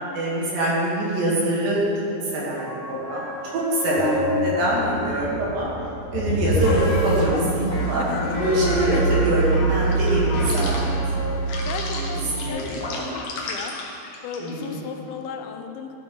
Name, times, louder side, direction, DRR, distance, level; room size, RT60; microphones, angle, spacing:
voice 1, 0.1-1.8 2.2-3.2 3.5-5.7 6.1-10.9 11.9-13.1 14.4-14.8, right 1 dB, 75° right, -6 dB, 3.4 m, -24 dB
sound 1, 2.6-7.5 8.1-14.7, left 2 dB, 65° left, 1.9 m, -29 dB
voice 2, 3.9-4.3 4.8-5.1 8.1-8.4 11.7-13.8 14.2-16.0, left 6 dB, 85° left, 5 dB, 2.4 m, -36 dB
sound 2, 6.2-12.5, right 4 dB, 40° left, 1.7 m, -25 dB
13.5 x 6.0 x 3.1 m, 2.8 s
omnidirectional pair, 4.1 m